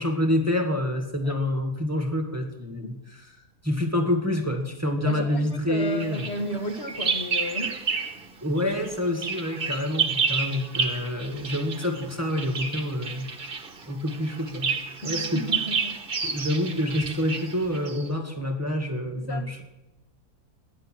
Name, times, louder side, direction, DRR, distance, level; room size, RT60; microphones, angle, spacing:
voice 1, 0.0-2.9 3.6-6.2 8.4-13.3 13.9-14.8 15.0-15.4 16.2-19.6, left 1 dB, 10° right, 3 dB, 1.9 m, -27 dB
voice 2, 5.1-7.8 15.0-16.0 19.2-19.5, left 1 dB, 40° left, 4 dB, 2.0 m, -33 dB
Bird vocalization bird call bird song, 6.0-8.3 8.6-18.1, right 5 dB, 35° right, 1.3 m, -30 dB
20.5 x 10.5 x 6.2 m, 1.0 s
omnidirectional pair, 1.7 m